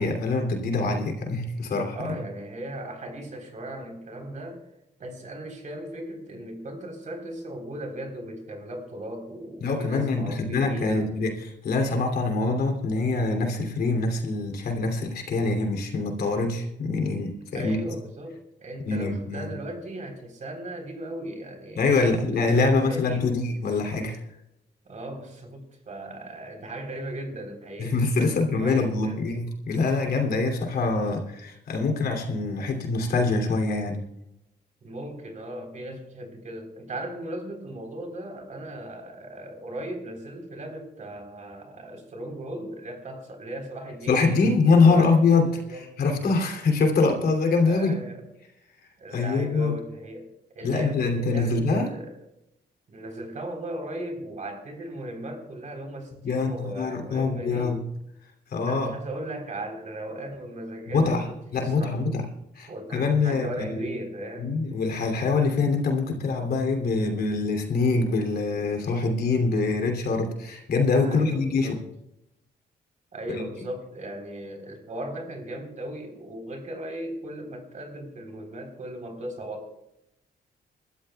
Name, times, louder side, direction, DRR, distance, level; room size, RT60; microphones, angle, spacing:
voice 1, 0.0-2.0 9.6-17.8 18.8-19.5 21.7-24.2 27.8-34.0 44.1-48.0 49.1-49.8 50.6-51.9 56.2-57.8 58.5-58.9 60.9-61.3 61.5-62.2 62.5-63.8 64.4-71.8 73.3-73.5, left 3 dB, 65° left, 2 dB, 2.8 m, -24 dB
voice 2, 1.9-4.6 5.0-11.1 17.5-23.4 24.8-29.2 34.8-45.9 47.6-48.2 49.0-50.3 50.5-52.2 52.9-57.8 58.7-62.0 62.2-62.3 62.7-64.5 71.0-71.8 73.1-79.7, right 1 dB, 45° right, 3 dB, 3.8 m, -37 dB
27.0 x 13.0 x 2.3 m, 0.85 s
cardioid pair, 105°, 17 cm